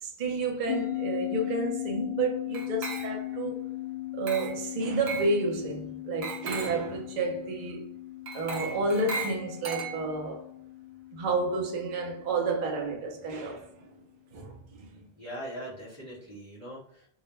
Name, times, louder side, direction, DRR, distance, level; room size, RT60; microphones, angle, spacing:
voice 1, 0.0-3.6 4.1-7.9 8.3-10.4 11.1-13.9 14.3-15.0, right 3 dB, 50° right, 0.6 m, -31 dB
sound 1, 0.7-13.4, left 15 dB, 85° left, 0.9 m, -38 dB
Glass, 2.5-3.4 4.3-4.7 5.1-5.4 6.2-6.9 8.3-10.3, right 4 dB, 75° right, 0.9 m, -37 dB
voice 2, 15.2-17.1, equal, 15° right, 1.0 m, -41 dB
2.3 x 2.1 x 3.0 m
omnidirectional pair, 1.1 m